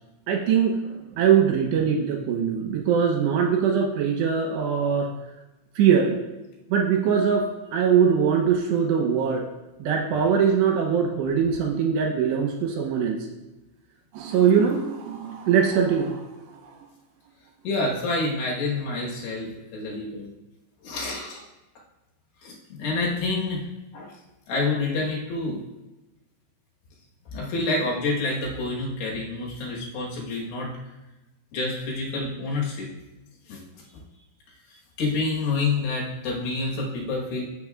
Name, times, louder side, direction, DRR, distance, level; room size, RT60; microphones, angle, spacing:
voice 1, 0.3-5.1 5.8-6.2 6.7-9.5 9.8-13.2 14.1-16.3, right 7 dB, 75° right, 1 dB, 2.8 m, -22 dB
voice 2, 17.6-20.3 20.8-21.4 22.4-23.7 23.9-24.1 24.5-25.6 27.3-30.7 31.5-32.9 33.5-33.6 35.0-37.5, left 3 dB, 70° left, -2 dB, 3.3 m, -28 dB
15.0 x 6.6 x 2.4 m, 1.1 s
omnidirectional pair, 5.3 m